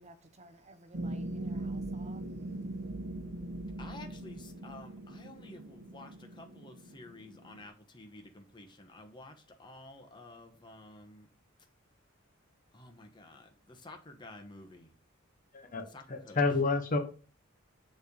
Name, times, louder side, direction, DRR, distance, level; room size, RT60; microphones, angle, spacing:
voice 1, 0.0-2.2, right 2 dB, 35° right, 0.8 m, -55 dB
sound 1, 0.9-7.7, right 1 dB, 60° right, 1.3 m, -40 dB
voice 2, 3.8-11.3 12.7-14.9 15.9-16.4, left 2 dB, 25° left, 1.0 m, -51 dB
voice 3, 15.5-17.0, left 3 dB, 40° left, 1.0 m, -30 dB
7.1 x 3.4 x 5.2 m
head